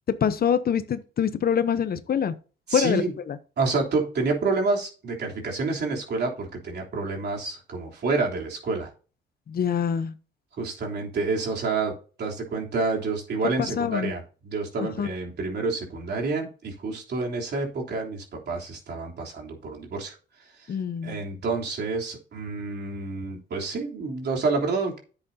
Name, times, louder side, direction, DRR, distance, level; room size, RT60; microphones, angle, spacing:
voice 1, 0.2-2.3 2.7-3.4 9.5-10.1 13.6-14.1 14.8-15.1 20.7-21.2, left 8 dB, 50° left, 0.9 m, -25 dB
voice 2, 2.7-3.1 3.6-8.9 10.6-20.2 21.0-25.0, right 3 dB, 55° right, 3.4 m, -28 dB
10.5 x 8.0 x 2.8 m
cardioid pair, 90°, 20 cm